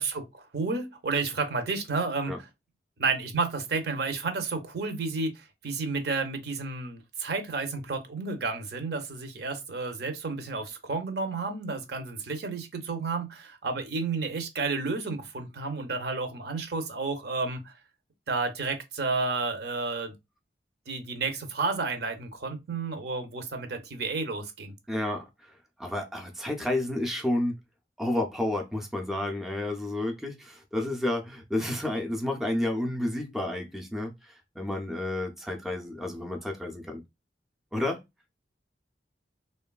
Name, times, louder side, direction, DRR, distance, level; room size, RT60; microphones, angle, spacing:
voice 1, 0.0-2.3 3.0-17.7 18.3-20.1 20.9-24.7, right 4 dB, 65° right, 0.6 m, -31 dB
voice 2, 24.9-25.5 25.8-27.6 28.0-37.0 37.7-38.0, left 1 dB, ahead, 0.3 m, -31 dB
3.0 x 2.2 x 2.3 m
head